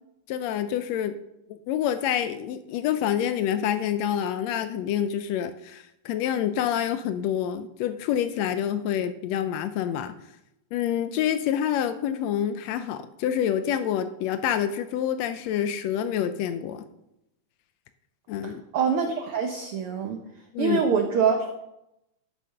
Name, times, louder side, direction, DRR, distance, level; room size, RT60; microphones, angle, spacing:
voice 1, 0.3-1.1 1.5-10.1 10.7-16.8 18.3-18.6 20.5-20.8, left 10 dB, 90° left, 10 dB, 1.5 m, -27 dB
voice 2, 18.4-20.2 20.6-21.6, right 6 dB, 85° right, 4 dB, 1.2 m, -25 dB
12.5 x 6.4 x 5.7 m, 0.86 s
omnidirectional pair, 3.7 m